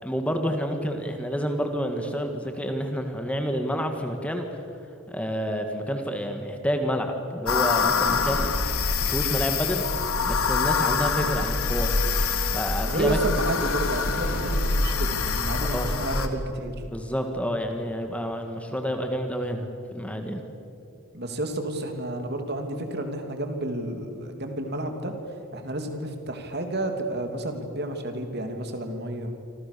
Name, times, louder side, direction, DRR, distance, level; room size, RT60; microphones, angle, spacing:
voice 1, 0.0-4.6 5.1-8.5 9.1-9.8 10.2-13.2 15.6-15.9 16.9-20.4, equal, 5° left, 5 dB, 1.8 m, -29 dB
sound 1, 7.5-16.3, left 4 dB, 85° left, 2.4 m, -25 dB
voice 2, 12.9-16.7 21.1-25.1 25.5-29.3, right 1 dB, 50° right, 5 dB, 3.0 m, -30 dB
28.5 x 26.0 x 7.0 m, 2.7 s
head